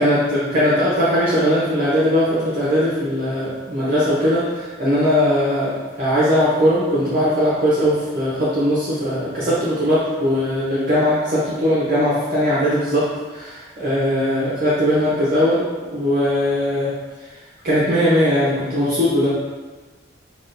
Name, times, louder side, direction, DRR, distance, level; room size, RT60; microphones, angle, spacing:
voice 1, 0.0-16.9 17.6-19.4, equal, 45° right, -9 dB, 0.7 m, -19 dB
6.0 x 2.1 x 2.5 m, 1.3 s
head